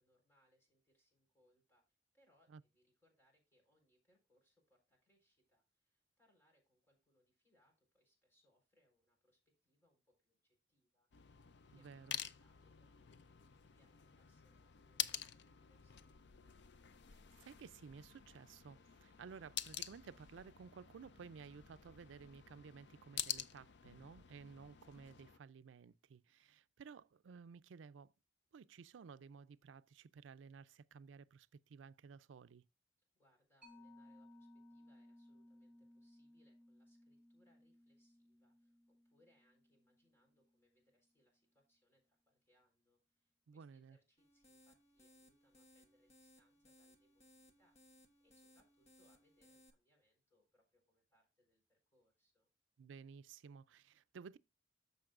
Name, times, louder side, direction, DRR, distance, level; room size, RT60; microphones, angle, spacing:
voice 1, 0.0-11.1 11.7-16.6 33.1-47.8 48.2-52.5, equal, 15° left, 4.1 m, -78 dB
sound 1, 11.1-25.4, left 10 dB, 65° left, 0.5 m, -48 dB
voice 2, 11.7-12.2 17.1-28.1 28.5-32.6 43.5-44.0 52.8-54.4, right 6 dB, 90° right, 0.4 m, -55 dB
Mallet percussion, 33.6-40.7, left 1 dB, 5° right, 5.3 m, -63 dB
sound 2, 44.2-49.7, equal, 35° left, 1.1 m, -67 dB
13.5 x 5.3 x 2.4 m
head